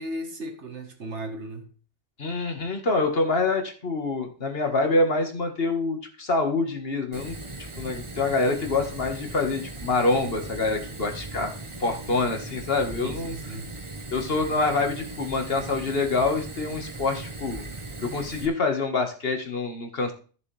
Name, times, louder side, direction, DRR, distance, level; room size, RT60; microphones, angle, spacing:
voice 1, 0.0-1.7 13.0-13.7, right 1 dB, 85° right, 1.9 m, -36 dB
voice 2, 2.2-7.4 7.8-11.5 11.8-13.3 14.1-17.6 18.0-20.1, left 3 dB, 60° left, 2.0 m, -26 dB
Fire, 7.1-18.5, right 2 dB, 25° right, 1.3 m, -38 dB
14.0 x 6.7 x 3.4 m
omnidirectional pair, 1.1 m